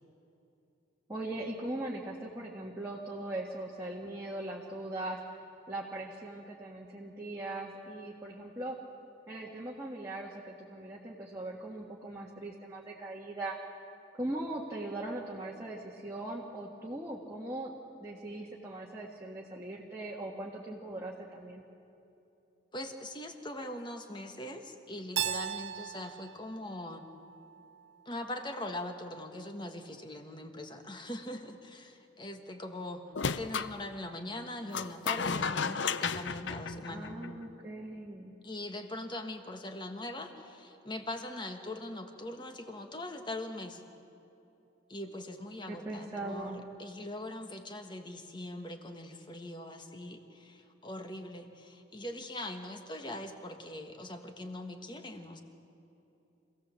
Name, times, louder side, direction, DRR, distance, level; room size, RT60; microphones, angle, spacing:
voice 1, 1.1-5.2 5.7-8.8 9.3-13.5 14.2-17.7 18.0-21.6 36.9-38.3 45.7-46.6, right 1 dB, 15° right, -4 dB, 1.6 m, -40 dB
voice 2, 22.7-27.1 28.0-33.0 33.4-37.2 38.4-43.8 44.9-55.4, left 1 dB, 25° left, 5 dB, 1.4 m, -41 dB
Keyboard (musical), 25.2-28.0, right 9 dB, 60° right, 0.6 m, -38 dB
sound 1, 33.1-33.7 34.7-37.4, left 5 dB, 65° left, 0.6 m, -33 dB
26.0 x 17.0 x 7.5 m, 2.9 s
head